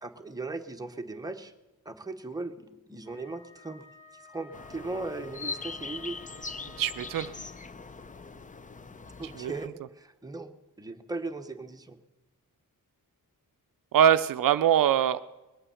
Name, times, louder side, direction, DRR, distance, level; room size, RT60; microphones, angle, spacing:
voice 1, 0.0-1.5 1.8-3.8 4.3-6.2 9.2-12.0, right 3 dB, 10° right, 5 dB, 1.0 m, -38 dB
Wind instrument woodwind instrument, 3.0-7.7, left 3 dB, 85° left, 7.3 m, -54 dB
sound 1, 4.5-9.7, left 4 dB, 25° left, 0.6 m, -41 dB
voice 2, 6.8-7.3 9.3-9.5 13.9-15.2, right 9 dB, 70° right, 12 dB, 0.5 m, -23 dB
20.5 x 8.8 x 7.1 m, 1.1 s
wide cardioid pair, 105°, 34 cm